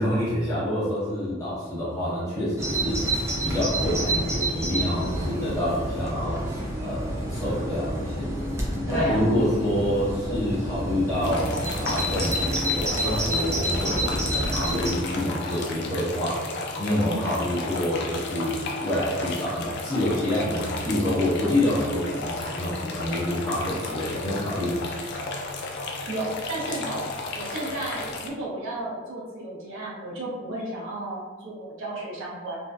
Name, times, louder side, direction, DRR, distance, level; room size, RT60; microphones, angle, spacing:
voice 1, 0.0-3.0 3.4-6.4 6.8-8.4 8.9-16.4 16.8-24.8, left 1 dB, 15° left, -10 dB, 0.9 m, -27 dB
Bird vocalization bird call bird song, 2.6-14.9, right 1 dB, 15° right, 0.5 m, -29 dB
voice 2, 8.9-9.4 17.0-17.3 26.1-27.1 27.4-32.6, right 2 dB, 65° right, -4 dB, 0.7 m, -33 dB
sound 1, 11.2-28.3, left 2 dB, 60° left, 0.4 m, -34 dB
2.5 x 2.1 x 2.3 m, 1.4 s
head